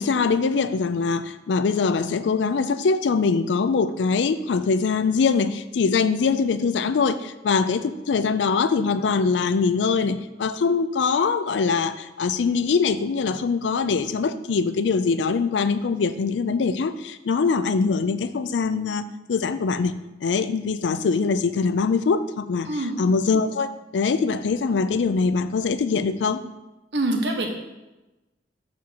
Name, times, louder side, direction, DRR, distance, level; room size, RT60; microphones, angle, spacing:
voice 1, 0.0-20.0 20.2-26.5, left 5 dB, 85° left, 13 dB, 0.4 m, -23 dB
voice 2, 22.7-23.0 26.9-27.5, right 1 dB, 75° right, 2 dB, 1.2 m, -25 dB
12.5 x 4.3 x 2.9 m, 1.0 s
head